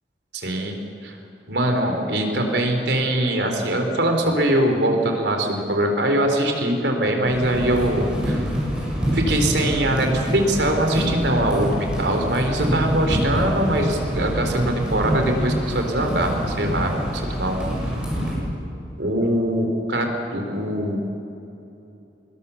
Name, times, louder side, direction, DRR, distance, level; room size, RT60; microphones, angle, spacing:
voice 1, 0.3-0.8 1.0-1.2 1.5-8.4 9.1-17.7 19.0-21.1, right 1 dB, 70° right, 4 dB, 3.8 m, -22 dB
sound 1, 7.3-18.3, equal, 5° right, 7.6 m, -26 dB
25.5 x 21.0 x 7.1 m, 2.8 s
head